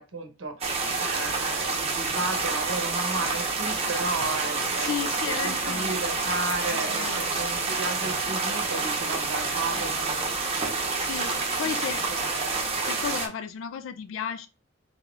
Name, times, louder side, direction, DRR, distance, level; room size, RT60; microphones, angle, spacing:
voice 1, 0.0-10.3 10.9-11.1 11.5-12.6, right 3 dB, 85° right, 0.8 m, -34 dB
sound 1, 0.6-13.3, right 3 dB, 30° right, 0.8 m, -28 dB
voice 2, 4.8-6.0 6.7-7.2 11.0-12.1 12.8-14.5, left 8 dB, 75° left, 0.3 m, -34 dB
4.1 x 3.8 x 2.3 m
head